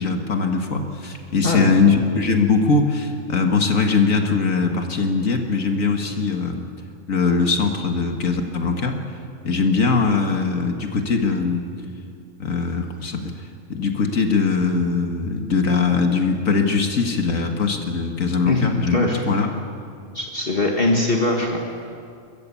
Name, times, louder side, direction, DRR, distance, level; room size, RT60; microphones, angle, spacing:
voice 1, 0.0-6.6 7.1-9.0 9.4-11.6 12.4-13.3 13.7-19.0 19.3-19.5, left 4 dB, 75° left, 4 dB, 2.1 m, -21 dB
voice 2, 18.5-19.2 20.1-21.6, left 2 dB, 40° left, -1 dB, 2.1 m, -21 dB
29.5 x 14.5 x 8.5 m, 2.4 s
omnidirectional pair, 1.4 m